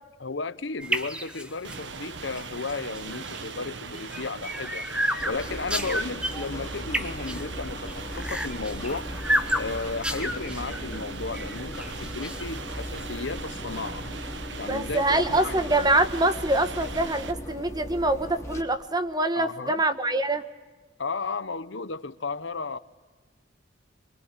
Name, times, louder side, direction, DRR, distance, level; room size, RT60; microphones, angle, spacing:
voice 1, 0.2-4.9 5.3-9.1 9.6-14.1 14.6-15.0 15.3-15.8 19.3-19.7 21.0-22.8, left 4 dB, 75° left, 14 dB, 1.0 m, -34 dB
sound 1, 0.8-13.3, equal, 5° right, 1.5 m, -33 dB
sound 2, 1.6-17.3, right 4 dB, 70° right, 1.3 m, -40 dB
sound 3, 5.2-18.6, left 1 dB, 15° left, 3.2 m, -38 dB
voice 2, 14.7-20.4, right 2 dB, 20° right, 10 dB, 1.4 m, -25 dB
25.0 x 23.5 x 9.9 m, 1.3 s
head